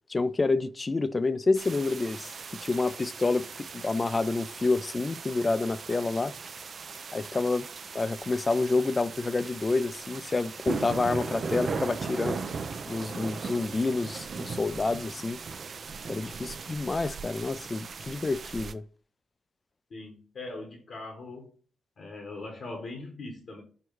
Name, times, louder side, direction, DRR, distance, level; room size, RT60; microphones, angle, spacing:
voice 1, 0.1-2.4 2.6-6.3 7.1-7.7 7.9-12.4 12.9-15.4 16.1-18.8, left 3 dB, 35° left, 0.3 m, -28 dB
sound 1, 1.5-18.7, right 5 dB, 60° right, 0.4 m, -38 dB
voice 2, 19.9-21.5 22.0-23.6, left 2 dB, 65° left, 1.2 m, -40 dB
4.5 x 2.3 x 4.6 m
supercardioid pair, 55°, 0 cm